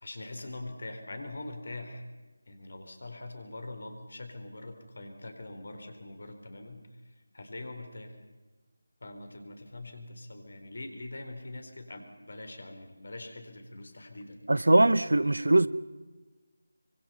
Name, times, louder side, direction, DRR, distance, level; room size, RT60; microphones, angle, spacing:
voice 1, 0.0-2.0 2.5-6.8 7.3-8.1 9.0-14.4 15.0-15.1, left 2 dB, 55° left, 3.9 m, -43 dB
voice 2, 14.5-15.7, right 2 dB, 60° right, 0.9 m, -21 dB
25.0 x 24.5 x 5.6 m
figure-of-eight pair, 160°, 0 cm